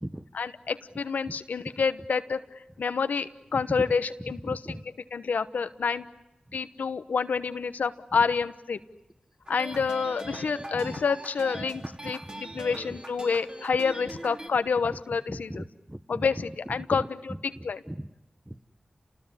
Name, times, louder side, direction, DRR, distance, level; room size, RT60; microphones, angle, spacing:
voice 1, 0.3-2.4 2.8-4.6 5.1-6.1 6.5-8.8 9.5-12.2 12.5-15.6 16.1-17.8, left 5 dB, 90° left, 1.1 m, -28 dB
voice 2, 4.2-4.8 6.5-6.6 9.7-9.8 10.6-11.0 11.5-11.9 12.5-13.0 14.8-15.0 15.3-16.5 16.9-18.1 18.5-18.6, right 1 dB, 15° right, 1.1 m, -39 dB
sound 1, 9.5-14.5, right 1 dB, 35° right, 4.4 m, -41 dB
29.0 x 20.0 x 9.8 m
cardioid pair, 45°, 3 cm